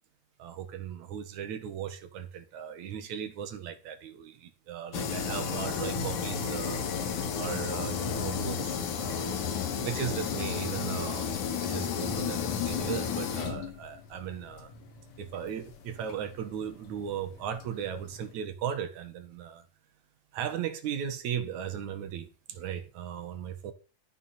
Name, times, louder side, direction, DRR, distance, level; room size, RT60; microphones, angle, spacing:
voice 1, 0.4-6.8 7.1-9.4 9.8-14.7 15.2-19.6 20.3-23.7, right 9 dB, 75° right, 2.7 m, -37 dB
sound 1, 4.9-18.3, left 7 dB, 80° left, 3.0 m, -33 dB
13.0 x 7.1 x 5.6 m
omnidirectional pair, 3.5 m